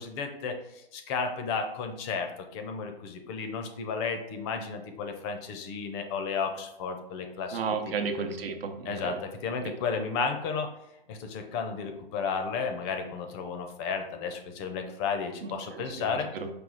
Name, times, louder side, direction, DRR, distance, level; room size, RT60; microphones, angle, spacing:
voice 1, 0.0-7.6 8.9-10.7 11.1-16.3, left 5 dB, 30° left, 6 dB, 0.4 m, -33 dB
voice 2, 7.5-9.2 9.6-9.7 15.4-16.5, right 5 dB, 75° right, 6 dB, 0.8 m, -34 dB
4.9 x 2.3 x 3.8 m, 0.87 s
hypercardioid pair, 135°, 29 cm